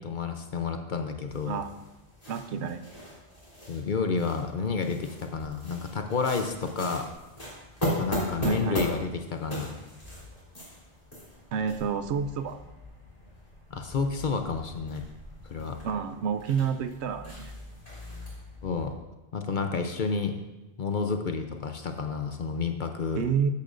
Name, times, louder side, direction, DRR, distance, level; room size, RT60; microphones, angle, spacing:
voice 1, 0.0-1.6 3.7-7.1 7.8-9.7 13.7-15.0 15.4-15.8 18.6-18.9 19.3-20.4 20.8-23.2, left 5 dB, 50° left, 6 dB, 0.7 m, -30 dB
sound 1, 1.3-18.9, left 1 dB, 30° left, 3.3 m, -39 dB
voice 2, 2.3-2.8 8.4-8.8 11.5-12.6 15.8-17.5 23.2-23.5, right 7 dB, 75° right, 9 dB, 0.8 m, -29 dB
12.5 x 8.5 x 2.6 m, 1.0 s
omnidirectional pair, 1.2 m